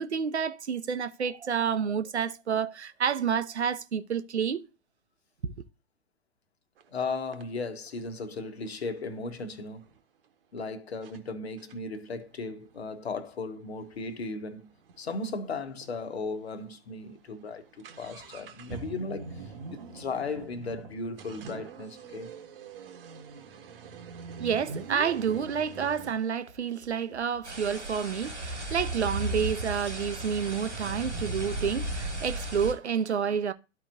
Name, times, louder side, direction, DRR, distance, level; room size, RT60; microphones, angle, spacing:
voice 1, 0.0-4.7 24.4-33.5, right 7 dB, 70° right, 0.8 m, -29 dB
sound 1, 6.8-6.9 7.3-10.0 10.6-10.7 11.0-11.2 11.6-15.3 15.5-15.6 15.8-15.9 16.5-16.7 17.0-26.1, right 5 dB, 55° right, 1.2 m, -44 dB
voice 2, 6.9-9.8 10.5-14.7 15.0-22.3, left 3 dB, 65° left, 1.3 m, -36 dB
sound 2, 27.4-32.7, right 1 dB, 85° right, 2.0 m, -35 dB
13.0 x 4.7 x 2.6 m
figure-of-eight pair, 105°, 34 cm